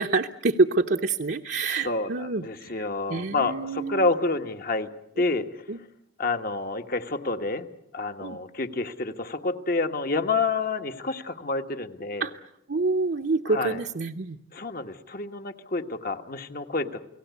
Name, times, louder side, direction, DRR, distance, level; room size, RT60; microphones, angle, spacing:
voice 1, 0.0-2.4 2.7-2.8 3.1-4.1 5.7-5.8 8.2-8.4 12.2-12.4 12.7-14.4, right 3 dB, 65° right, 2 dB, 0.8 m, -26 dB
voice 2, 1.6-4.9 5.2-5.7 6.2-7.7 7.9-12.3 13.5-13.8 14.5-17.1, left 3 dB, 50° left, 7 dB, 1.4 m, -29 dB
29.5 x 18.0 x 8.3 m, 0.81 s
head